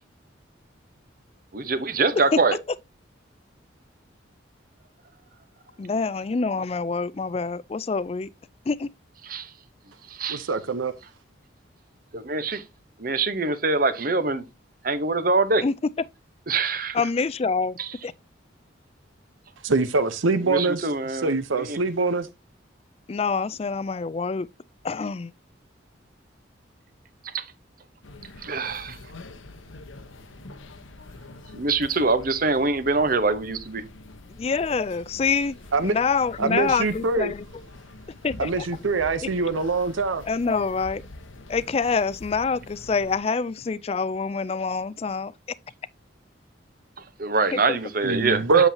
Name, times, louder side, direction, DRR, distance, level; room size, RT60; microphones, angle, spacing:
voice 1, 1.5-2.6 9.2-9.5 10.1-10.5 12.1-12.6 13.0-14.5 14.8-15.6 16.5-17.0 17.8-17.9 20.4-21.8 27.2-27.4 28.4-29.0 31.5-33.8 47.0-48.7, right 3 dB, 45° right, 0.9 m, -24 dB
voice 2, 5.8-8.3 8.7-8.9 15.6-15.7 16.9-17.8 18.0-18.1 23.1-24.5 24.8-25.3 34.4-35.6 35.8-37.4 38.2-38.7 40.3-41.0 41.5-45.3 47.5-47.8, left 4 dB, 30° left, 0.3 m, -26 dB
voice 3, 10.3-10.9 19.6-22.3 35.7-35.9 36.4-37.3 38.4-40.2 48.0-48.7, right 4 dB, 85° right, 0.7 m, -24 dB
sound 1, 28.0-43.2, left 2 dB, 85° left, 1.0 m, -45 dB
8.0 x 7.4 x 2.7 m
head